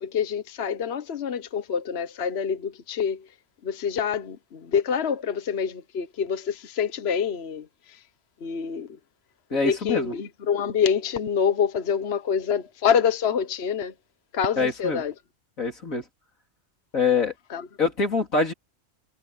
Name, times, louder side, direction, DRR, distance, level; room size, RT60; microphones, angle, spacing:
voice 1, 0.0-3.2 3.6-8.0 8.4-8.9 9.6-13.9 14.3-15.1 17.5-17.7, left 7 dB, 55° left, 1.2 m, -26 dB
voice 2, 9.5-10.1 14.6-15.0 15.6-16.0 16.9-17.3 17.8-18.5, left 4 dB, 85° left, 4.1 m, -24 dB
omnidirectional pair, 1.4 m